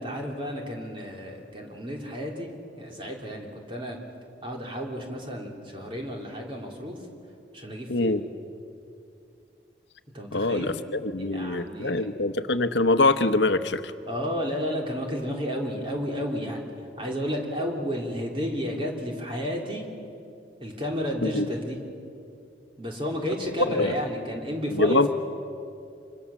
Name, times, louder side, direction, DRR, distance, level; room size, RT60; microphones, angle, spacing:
voice 1, 0.0-2.5 2.7-4.0 4.4-7.0 7.5-8.2 10.1-10.7 11.2-12.1 14.1-16.6 17.0-19.8 20.6-21.8 22.8-25.1, equal, 30° right, 0 dB, 3.4 m, -32 dB
voice 2, 7.9-8.2 10.3-13.9 21.2-21.5 23.7-23.9 24.7-25.1, left 2 dB, 80° left, 10 dB, 1.0 m, -24 dB
27.0 x 25.0 x 7.2 m, 2.6 s
head